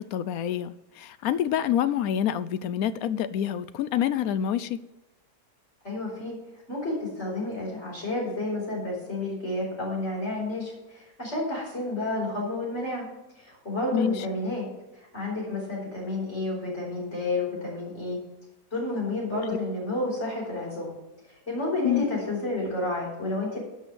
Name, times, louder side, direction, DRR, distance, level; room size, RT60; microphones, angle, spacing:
voice 1, 0.0-4.8 13.9-14.3 21.8-22.0, left 10 dB, 75° left, 1.0 m, -27 dB
voice 2, 5.8-6.4 6.7-13.1 13.4-14.7 15.1-18.2 18.7-20.9 21.5-23.6, left 2 dB, 50° left, 5.2 m, -30 dB
12.0 x 5.4 x 6.8 m
omnidirectional pair, 1.6 m